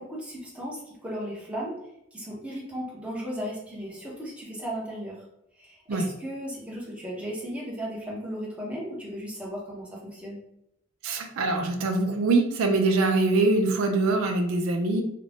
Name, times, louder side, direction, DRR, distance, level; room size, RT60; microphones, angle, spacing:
voice 1, 0.0-1.8 2.1-5.2 5.6-10.4, equal, 5° right, -5 dB, 0.7 m, -36 dB
voice 2, 11.0-15.0, right 3 dB, 80° right, 4 dB, 0.4 m, -23 dB
2.5 x 2.0 x 3.2 m, 0.80 s
head